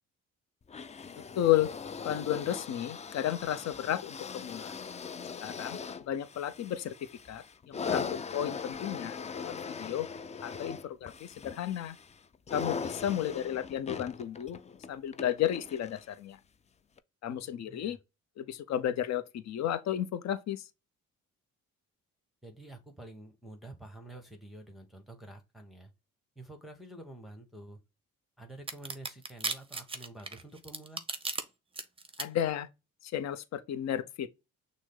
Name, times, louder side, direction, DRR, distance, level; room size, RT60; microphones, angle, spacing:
sound 1, 0.7-16.2 17.0-17.1, left 5 dB, 25° left, 0.4 m, -40 dB
voice 1, 1.2-1.7 2.0-4.7 5.4-5.8 6.1-6.9 7.3-9.5 9.8-10.1 10.4-12.0 12.5-14.6 14.9-16.4 17.2-18.0 18.4-20.7 32.2-32.7 33.0-34.3, left 11 dB, 60° left, 0.6 m, -33 dB
voice 2, 17.3-18.0 22.4-25.9 26.3-27.8 28.4-31.0, right 1 dB, ahead, 1.1 m, -49 dB
sound 2, 28.7-31.4 31.8-32.2, right 3 dB, 20° right, 0.7 m, -35 dB
6.2 x 2.1 x 3.7 m
cardioid pair, 90°, 30 cm